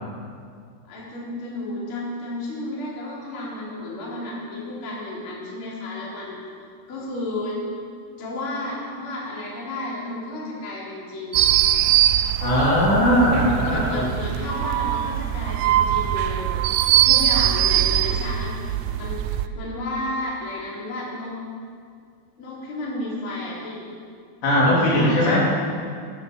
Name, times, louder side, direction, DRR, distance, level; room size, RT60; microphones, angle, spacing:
voice 1, 0.9-6.4 6.9-7.6 8.2-11.4 13.7-16.6 17.1-18.6 19.0-21.3 22.4-23.8 24.9-25.5, left 1 dB, 30° left, -6 dB, 3.5 m, -32 dB
sound 1, 11.3-19.5, right 12 dB, 85° right, 3.1 m, -21 dB
voice 2, 12.4-14.1 24.4-25.5, equal, 60° left, -6 dB, 5.4 m, -19 dB
18.0 x 10.5 x 7.5 m, 2.2 s
omnidirectional pair, 5.8 m